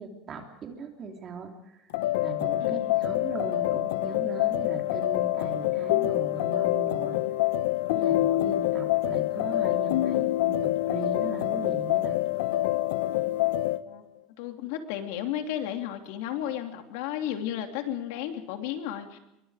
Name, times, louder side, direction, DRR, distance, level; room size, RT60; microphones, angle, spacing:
voice 1, 0.0-1.9 2.2-7.2 7.9-12.2, right 4 dB, 25° right, 3 dB, 3.3 m, -39 dB
sound 1, 1.9-13.8, left 15 dB, 90° left, 1.1 m, -26 dB
voice 2, 2.6-2.9 13.8-14.0 14.4-19.2, left 11 dB, 65° left, 5 dB, 3.1 m, -33 dB
27.5 x 23.5 x 5.1 m, 0.87 s
cardioid pair, 175°, 0 cm